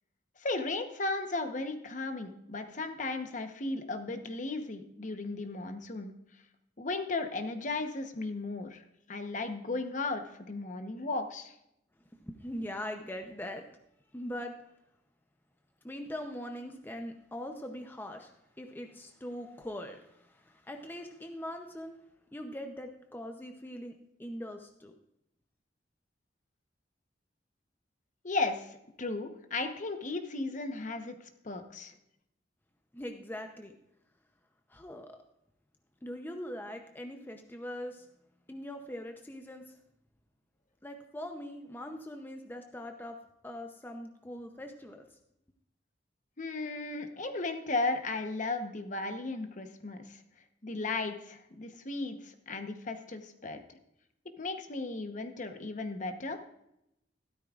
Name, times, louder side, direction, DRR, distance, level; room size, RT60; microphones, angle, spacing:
voice 1, 0.4-6.1 6.8-8.8 9.1-11.5 28.2-31.2 31.4-31.9 46.4-50.2 50.6-53.6 54.4-56.4, left 3 dB, 45° left, 7 dB, 0.9 m, -35 dB
voice 2, 12.2-13.6 14.1-14.5 15.8-18.3 18.6-22.0 22.3-25.0 32.9-33.7 34.7-35.2 36.0-38.1 38.5-39.8 40.8-43.2 43.4-45.2, left 1 dB, 10° left, 4 dB, 0.6 m, -41 dB
13.0 x 12.5 x 2.4 m, 0.81 s
head